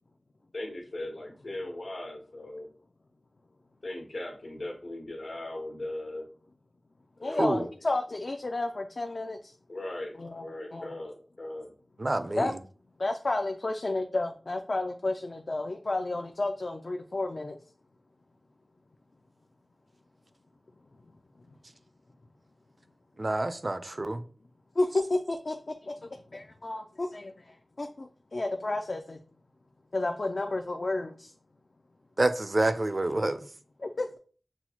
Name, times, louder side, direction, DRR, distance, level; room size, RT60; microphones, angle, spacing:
voice 1, 0.5-2.7 3.8-6.3 7.2-7.7 9.7-11.7, left 1 dB, 80° left, 1.2 m, -39 dB
voice 2, 7.2-9.5 10.2-10.5 10.7-10.9 12.4-12.5 13.0-17.6 24.8-29.2 29.9-31.3 33.8-34.2, left 2 dB, 60° left, 0.4 m, -31 dB
voice 3, 12.0-12.6 23.2-24.2 32.2-33.4, right 2 dB, 45° right, 0.4 m, -27 dB
6.0 x 2.1 x 2.8 m
wide cardioid pair, 45°, 0 cm